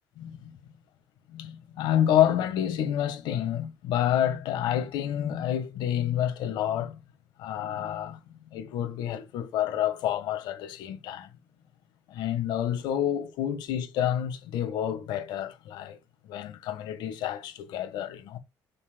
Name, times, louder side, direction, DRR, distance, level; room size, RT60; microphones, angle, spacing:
voice 1, 0.2-0.5 1.3-7.0 7.4-8.2 8.5-11.3 12.1-16.0 16.2-18.4, left 10 dB, 80° left, 1.5 m, -28 dB
9.6 x 7.0 x 2.3 m
cardioid pair, 100°, 8 cm